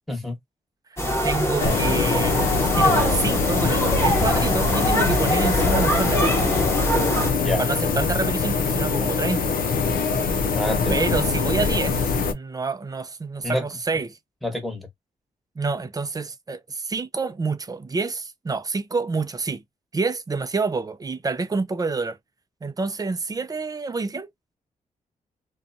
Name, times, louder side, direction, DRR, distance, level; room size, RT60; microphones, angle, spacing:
sound 1, 1.0-7.3, equal, 15° left, 1.0 m, -23 dB
voice 1, 1.2-2.5 2.8-6.6 7.6-9.6 10.9-12.0 12.3-14.2 15.6-19.6 19.9-22.2 22.6-24.3, right 4 dB, 25° right, 0.5 m, -28 dB
sound 2, 1.6-12.3, left 4 dB, 80° left, 0.5 m, -23 dB
voice 2, 10.5-11.0 13.4-13.7 14.4-14.9, left 1 dB, ahead, 1.2 m, -27 dB
2.6 x 2.2 x 2.6 m
cardioid pair, 85°, 15 cm